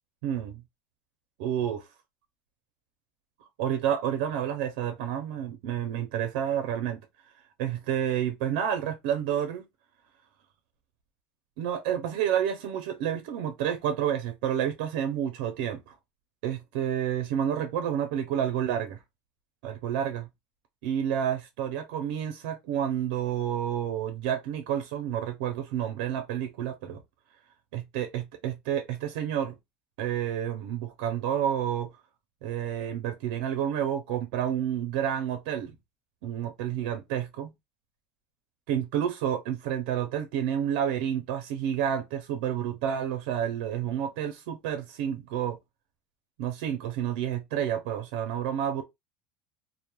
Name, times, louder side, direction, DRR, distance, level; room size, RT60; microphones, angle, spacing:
voice 1, 0.2-0.6 1.4-1.9 3.6-7.0 7.6-9.7 11.6-15.9 16.4-19.0 19.6-20.3 20.8-27.0 27.7-29.5 30.0-31.9 32.4-35.8 36.2-37.5 38.7-45.6 46.4-48.8, right 9 dB, 75° right, 0.4 m, -29 dB
2.2 x 2.0 x 2.9 m
cardioid pair, 180°, 5 cm